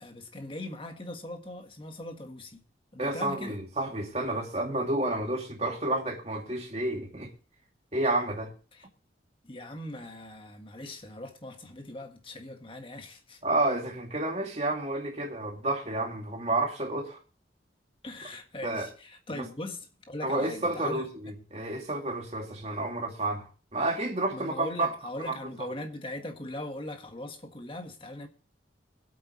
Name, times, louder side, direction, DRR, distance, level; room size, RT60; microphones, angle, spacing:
voice 1, 0.0-2.6 2.9-3.6 8.7-8.9 9.4-13.4 18.0-21.1 24.3-28.3, left 1 dB, 30° left, 1.6 m, -40 dB
voice 2, 3.0-7.3 7.9-8.5 13.4-17.2 18.6-18.9 19.3-19.5 20.2-24.9 25.2-25.4, right 2 dB, 35° right, 2.5 m, -30 dB
22.5 x 8.6 x 3.1 m
head